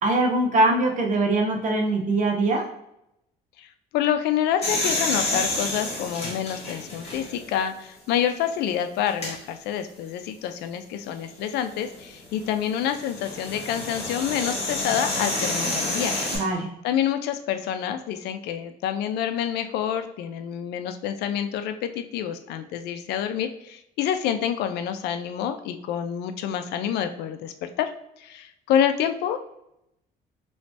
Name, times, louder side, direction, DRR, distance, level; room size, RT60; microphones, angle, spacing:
voice 1, 0.0-2.7 16.3-16.7, right 2 dB, 50° right, 1 dB, 0.9 m, -22 dB
voice 2, 3.6-16.2 16.8-27.9 28.2-29.4, left 9 dB, 80° left, 9 dB, 0.4 m, -27 dB
sound 1, 4.6-7.5 8.1-8.2 9.1-9.3 11.5-16.4, left 2 dB, 35° left, 1.5 m, -29 dB
3.2 x 3.1 x 2.7 m, 0.82 s
cardioid pair, 110°, 17 cm